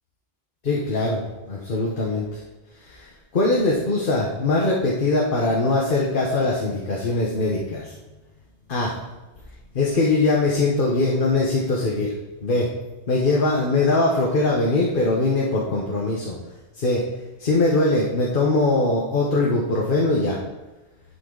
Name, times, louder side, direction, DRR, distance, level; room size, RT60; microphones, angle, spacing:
voice 1, 0.6-2.4 2.8-7.9 8.7-8.9 9.7-12.1 12.4-12.7 13.1-16.4 16.8-17.0 17.4-20.4, left 2 dB, 55° left, -3 dB, 1.3 m, -21 dB
10.5 x 6.1 x 3.9 m, 1.1 s
omnidirectional pair, 1.1 m